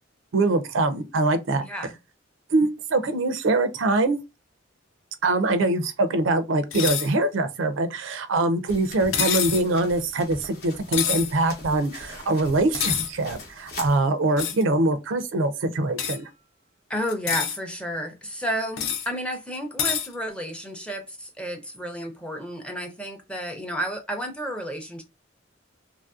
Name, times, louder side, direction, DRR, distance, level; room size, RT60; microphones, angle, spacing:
voice 1, 0.3-1.6 2.5-4.2 5.2-16.3, right 2 dB, 75° right, 0.4 m, -23 dB
voice 2, 1.6-1.9 16.9-25.0, equal, 5° left, 0.6 m, -31 dB
sound 1, 6.7-7.1 9.1-9.7 10.9-11.3 12.7-13.1 14.4-14.6 16.0-16.2 17.1-17.6 18.8-19.1 19.8-20.1, left 8 dB, 85° left, 0.5 m, -26 dB
sound 2, 8.7-14.0, left 2 dB, 55° left, 0.8 m, -41 dB
2.9 x 2.5 x 2.3 m
head